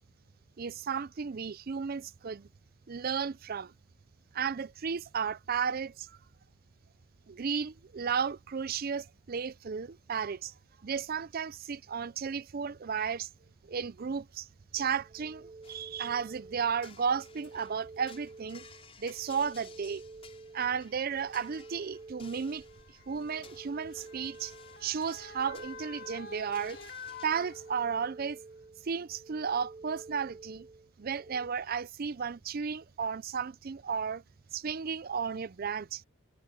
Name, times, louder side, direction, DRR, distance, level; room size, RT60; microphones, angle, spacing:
voice 1, 0.6-2.5 2.9-3.7 4.3-6.2 7.3-10.5 10.8-13.3 13.6-14.5 14.7-18.6 19.0-20.0 20.5-22.6 23.1-24.5 24.8-26.8 27.2-28.4 28.8-30.7 31.0-34.2 34.5-36.0, right 6 dB, 40° right, 0.4 m, -34 dB
sound 1, 14.8-31.5, right 3 dB, 25° right, 2.1 m, -50 dB
sound 2, 15.6-27.3, left 6 dB, 25° left, 5.5 m, -57 dB
Motor vehicle (road) / Siren, 18.3-18.4 19.3-19.5 20.6-28.2 28.6-28.7, left 5 dB, 45° left, 3.0 m, -49 dB
head